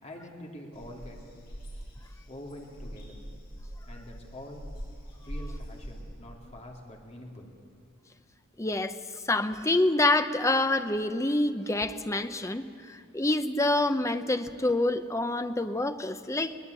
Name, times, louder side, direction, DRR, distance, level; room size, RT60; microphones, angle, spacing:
voice 1, 0.0-1.2 2.3-3.2 3.9-4.6 5.2-7.5, left 1 dB, 30° left, 0 dB, 3.2 m, -45 dB
sound 1, 0.7-6.0, equal, 50° left, 7.1 m, -42 dB
voice 2, 8.6-9.0 9.2-16.6, left 2 dB, 15° left, 9 dB, 0.8 m, -27 dB
22.5 x 19.0 x 8.3 m, 2.4 s
head